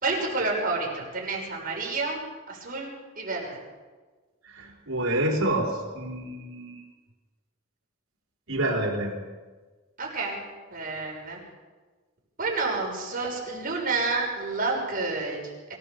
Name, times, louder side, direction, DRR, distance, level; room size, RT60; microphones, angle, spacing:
voice 1, 0.0-2.2 2.5-3.6 10.0-10.4 10.7-11.4 12.4-15.4, right 3 dB, 45° right, -2 dB, 6.1 m, -29 dB
voice 2, 4.4-6.8 8.5-9.1, right 1 dB, 80° right, 0 dB, 5.0 m, -28 dB
24.0 x 16.0 x 7.1 m, 1.4 s
head